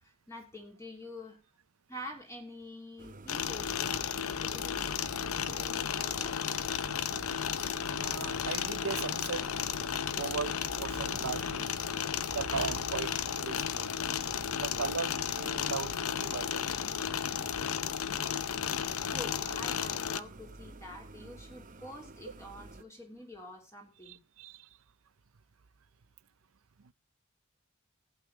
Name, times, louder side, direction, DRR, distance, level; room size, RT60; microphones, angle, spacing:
voice 1, 0.0-1.4 1.9-4.8 5.2-6.4 19.0-24.2, left 1 dB, 15° left, 3.2 m, -47 dB
sound 1, 3.0-22.8, right 2 dB, 35° right, 0.8 m, -50 dB
sound 2, 3.3-20.2, left 8 dB, 75° left, 0.7 m, -34 dB
sound 3, 5.7-8.3 8.6-8.7 9.0-9.5 10.0-10.4 11.1-11.2, left 2 dB, 60° left, 7.8 m, -55 dB
voice 2, 7.9-9.5 9.9-13.9 14.6-16.7 18.9-19.1 24.0-24.8 26.8-26.9, right 5 dB, 70° right, 0.6 m, -38 dB
15.5 x 8.5 x 5.0 m
head